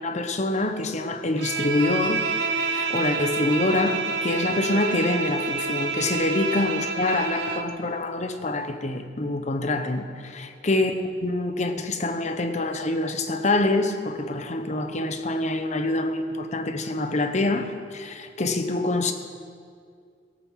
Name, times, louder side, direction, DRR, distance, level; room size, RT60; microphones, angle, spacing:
voice 1, 0.0-10.9 11.2-19.1, left 2 dB, 40° left, 7 dB, 1.0 m, -26 dB
Bowed string instrument, 1.4-7.8, right 4 dB, 80° right, 1.0 m, -28 dB
17.5 x 7.1 x 7.4 m, 2.2 s
head